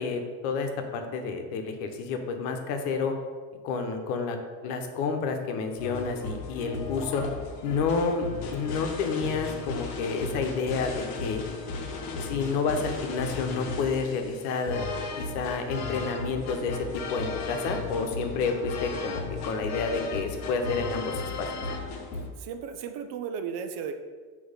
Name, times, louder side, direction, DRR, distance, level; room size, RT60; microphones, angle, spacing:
voice 1, 0.0-3.1 3.6-4.4 4.6-7.2 7.6-11.4 12.2-14.9 15.2-16.8 17.1-21.5, left 4 dB, 75° left, 5 dB, 1.0 m, -30 dB
sound 1, 5.8-22.3, left 3 dB, 50° left, 1.0 m, -35 dB
voice 2, 22.1-23.9, right 7 dB, 55° right, 7 dB, 0.7 m, -35 dB
6.2 x 3.1 x 5.1 m, 1.5 s
supercardioid pair, 135°, 47 cm